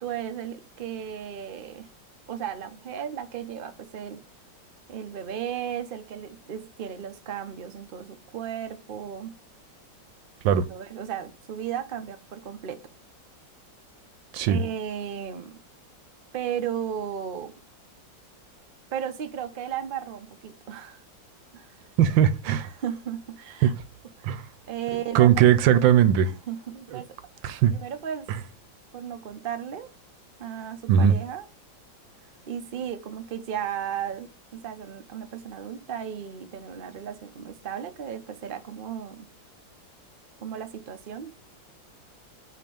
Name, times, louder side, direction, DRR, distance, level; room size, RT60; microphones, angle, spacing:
voice 1, 0.0-1.9 2.3-4.2 4.9-9.3 10.5-12.8 14.5-15.6 16.3-17.5 18.9-21.0 21.5-21.8 22.5-23.7 24.2-24.4 24.7-25.5 26.2-27.2 27.4-28.3 28.9-29.9 30.4-31.5 32.5-39.3 40.4-41.3, right 9 dB, 45° right, 0.7 m, -35 dB
voice 2, 22.0-22.6 23.6-23.7 24.2-24.4 25.1-26.3 27.4-27.7 30.9-31.1, right 9 dB, 85° right, 1.4 m, -19 dB
8.4 x 3.0 x 5.3 m
omnidirectional pair, 2.0 m